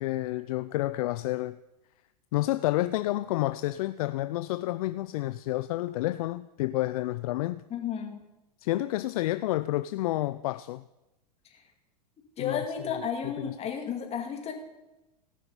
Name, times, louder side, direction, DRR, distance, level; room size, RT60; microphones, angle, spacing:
voice 1, 0.0-1.6 2.3-7.6 8.6-10.8 12.4-12.6 12.9-13.0 13.4-13.5, left 17 dB, 60° left, 0.4 m, -29 dB
voice 2, 7.7-8.2 11.5-11.6 12.4-14.5, left 7 dB, 30° left, 2.3 m, -33 dB
17.5 x 5.9 x 5.3 m
hypercardioid pair, 100°, 21 cm